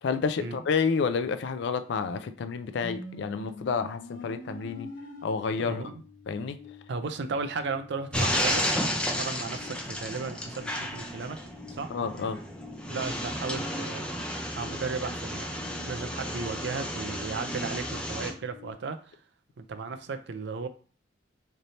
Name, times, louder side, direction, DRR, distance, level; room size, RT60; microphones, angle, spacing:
voice 1, 0.0-4.9 5.2-5.8 6.3-6.6 11.9-12.4, left 5 dB, 65° left, 10 dB, 0.4 m, -29 dB
sound 1, 2.8-18.7, left 3 dB, 45° left, 0.8 m, -48 dB
voice 2, 6.9-11.4 11.7-11.9 12.8-14.1 14.5-15.5 15.7-19.2 19.6-20.7, right 4 dB, 65° right, 9 dB, 0.4 m, -35 dB
sound 2, 8.1-18.3, equal, 5° left, 0.5 m, -32 dB
3.3 x 2.7 x 4.0 m, 0.41 s
head